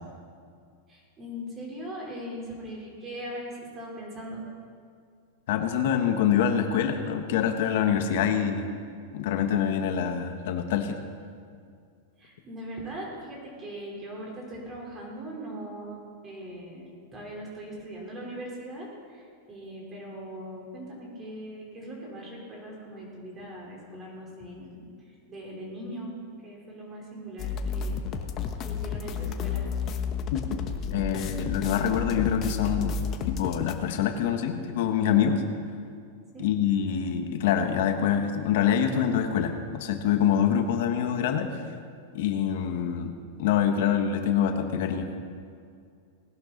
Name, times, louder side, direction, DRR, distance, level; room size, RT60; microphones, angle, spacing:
voice 1, 0.9-4.4 12.2-26.2 26.4-28.0 28.6-29.7 36.3-36.5, right 1 dB, 20° right, -2 dB, 4.1 m, -40 dB
voice 2, 5.5-8.7 9.1-11.0 30.3-30.6 30.9-32.9 33.3-35.4 36.4-41.5 42.1-43.1 43.4-45.1, left 8 dB, 65° left, 6 dB, 1.4 m, -25 dB
sound 1, 27.4-33.7, left 6 dB, 35° left, 1.0 m, -31 dB
19.0 x 11.0 x 4.1 m, 2.3 s
supercardioid pair, 145°, 0 cm